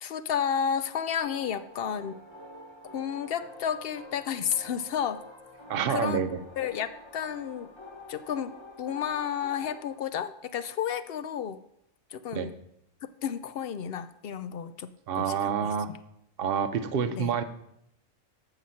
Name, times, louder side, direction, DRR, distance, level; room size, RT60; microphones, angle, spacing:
voice 1, 0.0-2.2 2.9-5.2 5.9-6.2 6.6-7.7 8.1-11.6 12.1-12.5 13.2-15.7 17.1-17.3, left 8 dB, 65° left, 13 dB, 0.6 m, -32 dB
sound 1, 1.2-9.9, left 2 dB, 20° left, 1.1 m, -47 dB
voice 2, 5.7-6.4 12.3-12.5 15.1-15.9 16.4-17.4, right 7 dB, 50° right, 9 dB, 0.9 m, -28 dB
13.5 x 5.9 x 5.6 m, 0.77 s
omnidirectional pair, 1.4 m